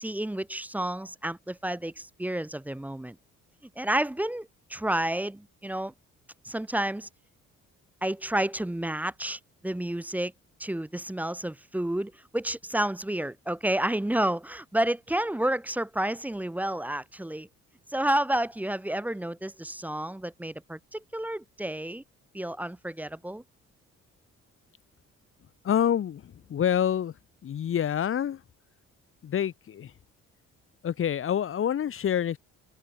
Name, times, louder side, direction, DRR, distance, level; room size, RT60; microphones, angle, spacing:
voice 1, 0.0-3.2 3.8-5.9 6.4-7.1 8.0-10.3 10.6-17.5 17.9-22.0 22.3-23.4, right 1 dB, 5° right, 0.6 m, -30 dB
voice 2, 25.6-27.1 27.4-28.4 29.2-29.9 30.8-32.4, left 9 dB, 45° left, 0.8 m, -27 dB
cardioid pair, 90°, 30 cm